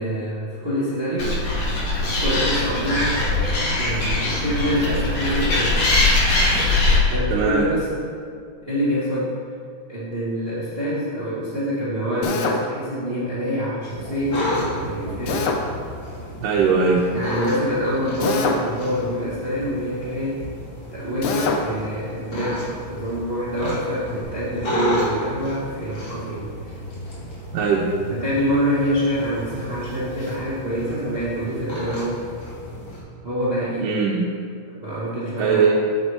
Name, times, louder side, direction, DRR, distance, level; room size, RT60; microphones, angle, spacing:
voice 1, 0.0-1.4 2.0-3.2 3.7-5.9 7.1-7.9 8.6-9.3 9.9-15.5 17.1-20.4 20.9-26.5 28.1-32.2 33.2-33.9 34.8-35.7, equal, 50° right, -9 dB, 0.7 m, -26 dB
Animal, 1.2-7.0, left 2 dB, 55° left, 1.1 m, -21 dB
voice 2, 7.3-7.7 16.4-17.1 27.5-27.9 33.8-34.3 35.4-35.8, right 5 dB, 85° right, -3 dB, 2.4 m, -19 dB
Drill, 12.2-12.6 15.3-15.6 18.2-18.7 21.2-21.6, left 4 dB, 85° left, 1.4 m, -23 dB
sound 1, 13.9-33.0, left 1 dB, 35° left, 2.0 m, -32 dB
8.8 x 8.6 x 3.3 m, 2.3 s
omnidirectional pair, 3.8 m